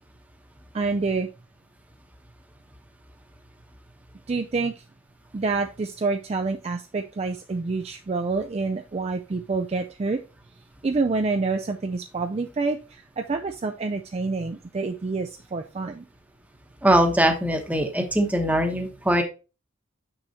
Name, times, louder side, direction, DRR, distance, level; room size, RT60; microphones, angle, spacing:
voice 1, 0.7-1.3 4.3-4.8 5.3-10.2 10.8-16.0, right 3 dB, 30° right, 5 dB, 0.3 m, -27 dB
voice 2, 16.8-19.2, right 1 dB, 5° right, 4 dB, 0.9 m, -21 dB
6.3 x 6.3 x 2.8 m, 0.31 s
head